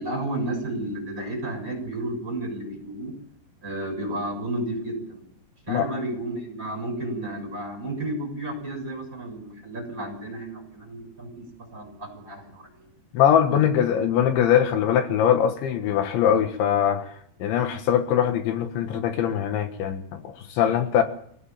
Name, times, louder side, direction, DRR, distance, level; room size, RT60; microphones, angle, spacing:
voice 1, 0.0-3.1 3.6-5.2 5.7-11.4 11.7-12.7 13.5-13.6, right 1 dB, 15° right, 3 dB, 6.6 m, -32 dB
voice 2, 13.1-17.1 17.4-21.0, left 9 dB, 75° left, 7 dB, 3.7 m, -22 dB
25.5 x 16.5 x 7.4 m, 0.65 s
omnidirectional pair, 5.5 m